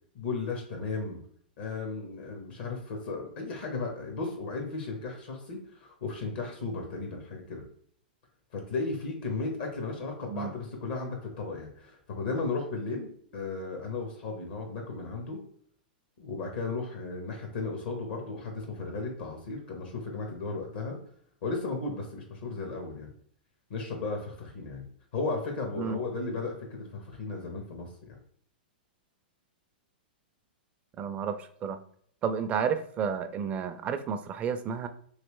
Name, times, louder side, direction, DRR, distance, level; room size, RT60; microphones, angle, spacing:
voice 1, 0.1-1.2 1.6-7.6 8.5-15.4 16.2-21.0 21.4-23.1 23.7-24.8 25.1-27.9, left 3 dB, 65° left, 2 dB, 0.9 m, -35 dB
voice 2, 31.0-31.8 32.2-34.9, right 7 dB, 25° right, 9 dB, 0.4 m, -31 dB
3.1 x 2.9 x 3.1 m, 0.62 s
hypercardioid pair, 115°, 5 cm